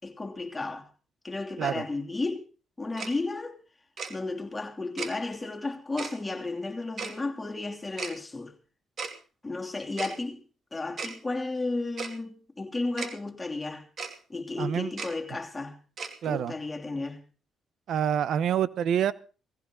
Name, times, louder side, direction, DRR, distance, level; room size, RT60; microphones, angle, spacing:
voice 1, 0.0-0.9 1.2-2.4 2.8-3.6 4.1-8.5 9.4-10.4 10.7-13.9 14.3-15.8 16.2-17.2, left 3 dB, 15° left, 3.1 m, -33 dB
Tick-tock, 3.0-3.1 4.0-4.1 5.0-5.1 6.0-6.1 7.0-7.1 8.0-8.1 9.0-9.1 10.0-10.1 11.0-11.1 12.0-12.1 13.0-13.1 14.0-14.1 15.0-15.1 16.0-16.1, right 5 dB, 50° right, 2.8 m, -35 dB
voice 2, 14.6-14.9 16.2-16.5 17.9-19.1, right 9 dB, 70° right, 0.9 m, -27 dB
18.5 x 15.5 x 3.9 m
cardioid pair, 90°, 0 cm